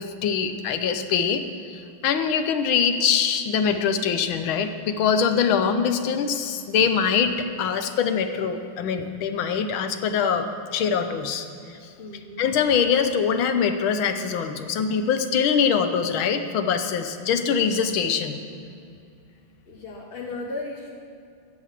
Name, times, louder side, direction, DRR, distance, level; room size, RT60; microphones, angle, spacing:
voice 1, 0.0-11.5 12.4-18.4, left 6 dB, 75° left, 8 dB, 1.6 m, -23 dB
voice 2, 12.0-12.4 19.7-20.9, left 2 dB, 40° left, -1 dB, 0.9 m, -35 dB
15.0 x 7.9 x 7.4 m, 2.4 s
omnidirectional pair, 2.3 m